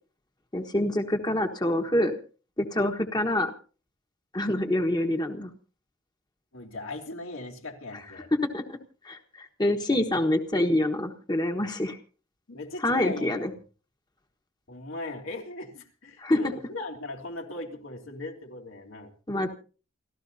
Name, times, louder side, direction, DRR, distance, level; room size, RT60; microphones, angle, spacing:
voice 1, 0.5-2.1 2.6-3.5 4.3-5.5 8.5-8.8 9.0-12.0 12.8-13.5 16.2-16.4 19.3-19.5, left 1 dB, 20° left, 4 dB, 1.4 m, -26 dB
voice 2, 6.5-8.3 12.5-13.4 14.7-19.1, left 2 dB, 80° left, 1 dB, 3.4 m, -39 dB
29.0 x 13.5 x 2.8 m, 0.37 s
head